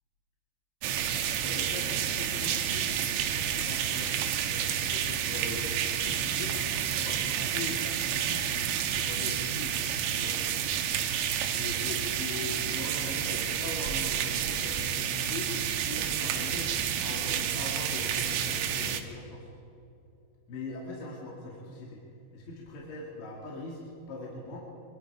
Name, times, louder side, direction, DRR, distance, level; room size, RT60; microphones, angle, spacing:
sound 1, 0.8-19.0, right 9 dB, 80° right, 3.4 m, -30 dB
voice 1, 1.4-4.1 4.5-9.8 10.1-10.4 11.5-15.5 15.9-16.8 17.0-19.5 20.5-22.0 22.3-24.6, left 2 dB, 70° left, -3 dB, 4.5 m, -41 dB
24.0 x 24.0 x 4.9 m, 2.6 s
omnidirectional pair, 5.4 m